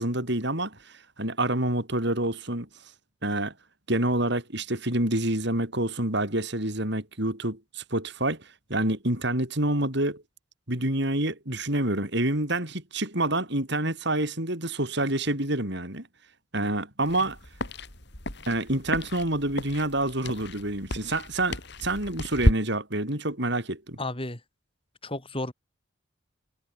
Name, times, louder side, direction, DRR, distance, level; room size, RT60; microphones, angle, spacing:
voice 1, 0.0-2.7 3.2-3.5 3.9-10.2 10.7-16.1 16.5-17.4 18.5-24.0, right 1 dB, 60° right, 7.3 m, -27 dB
sound 1, 17.0-22.5, left 1 dB, 60° left, 7.4 m, -31 dB
voice 2, 24.0-24.4 25.0-25.5, left 2 dB, 30° left, 5.4 m, -32 dB
head